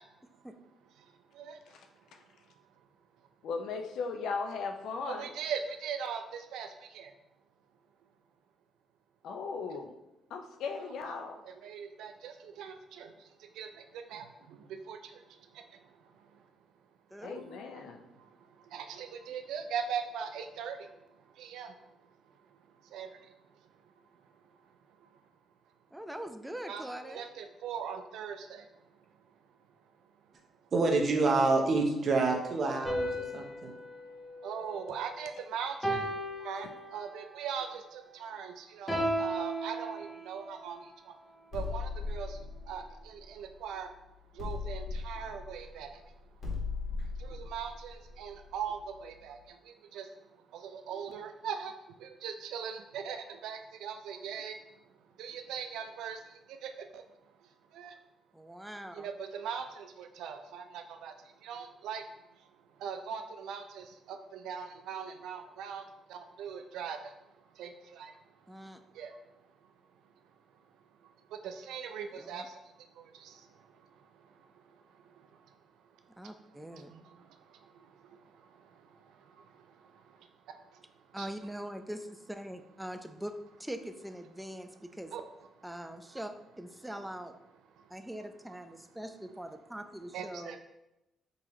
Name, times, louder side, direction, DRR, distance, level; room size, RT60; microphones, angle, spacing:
voice 1, 1.0-1.6 5.0-7.1 10.8-11.1 11.4-16.5 17.8-22.3 22.8-23.3 23.7-23.9 24.2-24.7 25.0-25.1 26.7-28.8 34.4-36.1 36.4-41.2 41.5-42.4 42.7-43.9 44.3-46.2 47.2-54.6 55.2-57.0 57.4-58.0 58.9-67.1 67.5-68.2 68.9-69.2 71.0-75.6 76.2-76.3 76.7-81.3 85.1-85.2 85.6-86.2 87.8-88.0 90.1-90.6, right 7 dB, 85° right, 6 dB, 0.3 m, -42 dB
voice 2, 3.4-5.3 9.2-9.9 10.3-11.4 17.2-18.0, left 4 dB, 80° left, 5 dB, 0.4 m, -37 dB
voice 3, 25.9-27.3 58.3-59.1 68.5-68.8 72.1-72.5 76.2-76.9 81.1-83.3 83.6-85.1 85.6-86.3 86.6-87.3 87.9-90.6, right 1 dB, 5° right, 7 dB, 0.3 m, -42 dB
voice 4, 30.7-33.7, right 3 dB, 50° right, 2 dB, 0.7 m, -27 dB
sound 1, 32.8-35.3 35.8-37.3 38.9-40.6, right 1 dB, 15° left, 0.9 m, -35 dB
sound 2, 41.5-43.9 44.4-49.0, left 4 dB, 50° left, 1.4 m, -39 dB
3.8 x 2.9 x 3.0 m, 0.91 s
cardioid pair, 90°, 0 cm